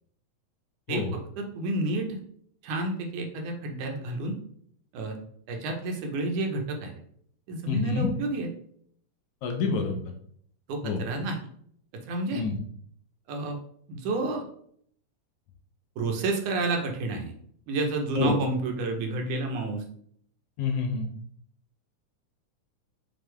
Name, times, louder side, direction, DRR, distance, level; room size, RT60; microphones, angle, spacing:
voice 1, 0.9-2.2 2.6-4.4 4.9-5.2 5.5-6.9 7.5-8.5 10.7-11.4 12.1-12.4 13.3-13.6 13.9-14.4 16.0-17.3 17.7-19.8, right 2 dB, 80° right, 3 dB, 2.6 m, -30 dB
voice 2, 7.7-8.1 9.4-10.0 10.8-11.0 12.3-12.6 18.2-18.4 20.6-21.1, left 5 dB, 75° left, 4 dB, 2.3 m, -27 dB
6.3 x 5.6 x 3.4 m, 0.64 s
omnidirectional pair, 3.5 m